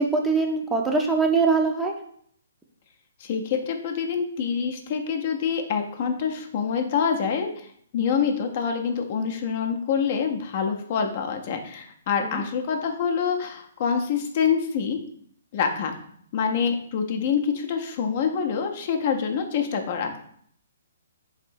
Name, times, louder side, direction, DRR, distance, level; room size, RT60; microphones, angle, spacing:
voice 1, 0.0-1.9 12.2-12.4, right 4 dB, 5° right, 1 dB, 0.5 m, -22 dB
voice 2, 3.2-7.7 7.9-15.0 15.5-15.9 16.3-20.1, left 6 dB, 40° left, 5 dB, 0.5 m, -26 dB
4.0 x 2.6 x 4.5 m, 0.63 s
figure-of-eight pair, 125°, 0 cm